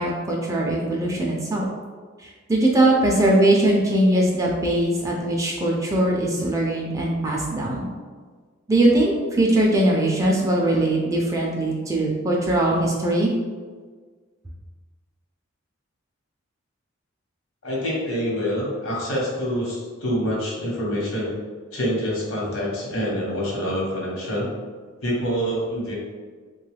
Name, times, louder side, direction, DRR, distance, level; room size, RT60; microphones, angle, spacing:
voice 1, 0.0-1.6 2.2-7.9 8.7-13.3, right 1 dB, 15° right, -2 dB, 0.3 m, -21 dB
voice 2, 17.6-21.3 21.7-24.5 25.0-25.9, equal, 80° left, -4 dB, 1.0 m, -26 dB
2.9 x 2.2 x 3.2 m, 1.5 s
head